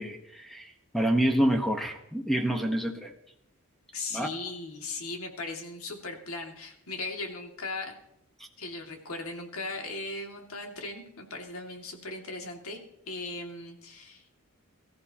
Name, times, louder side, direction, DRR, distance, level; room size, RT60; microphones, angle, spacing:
voice 1, 0.0-3.1 4.1-4.3, right 1 dB, ahead, 3 dB, 1.3 m, -27 dB
voice 2, 3.9-8.0 8.6-12.8 13.1-14.4, left 3 dB, 70° left, 2 dB, 2.5 m, -38 dB
23.5 x 14.0 x 3.0 m, 0.77 s
head